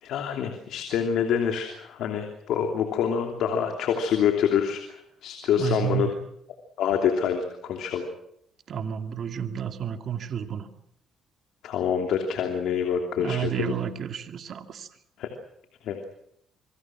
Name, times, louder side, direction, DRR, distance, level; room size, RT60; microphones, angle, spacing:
voice 1, 0.0-6.1 6.8-8.1 11.6-13.7 15.2-15.3 15.8-16.0, left 8 dB, 80° left, 4 dB, 3.0 m, -26 dB
voice 2, 5.6-6.2 8.7-10.7 13.2-14.9, right 9 dB, 60° right, 6 dB, 2.5 m, -30 dB
27.0 x 23.5 x 6.2 m, 0.72 s
cardioid pair, 90°, 0 cm